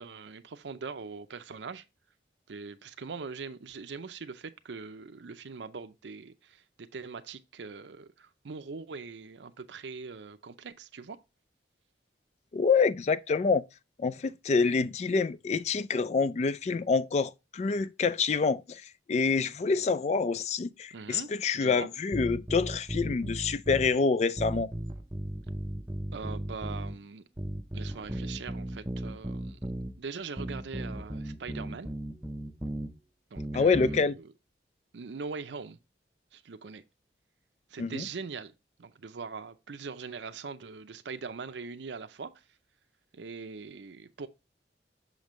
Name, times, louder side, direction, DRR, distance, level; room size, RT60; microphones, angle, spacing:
voice 1, 0.0-1.8 2.5-6.6 6.9-11.2 20.9-21.9 26.1-27.2 27.7-29.6 30.0-31.9 33.3-34.3 34.9-35.8 36.3-36.8 37.7-38.5 38.8-42.3 43.1-44.3, right 5 dB, 80° right, 0.6 m, -42 dB
voice 2, 12.5-13.6 14.0-18.8 19.1-24.7 33.5-34.1 37.8-38.0, left 4 dB, 35° left, 0.3 m, -27 dB
sound 1, 22.1-23.9 24.4-27.0 27.4-29.9 30.4-32.9 33.4-34.0, right 1 dB, 10° right, 0.5 m, -36 dB
6.4 x 5.2 x 3.0 m
head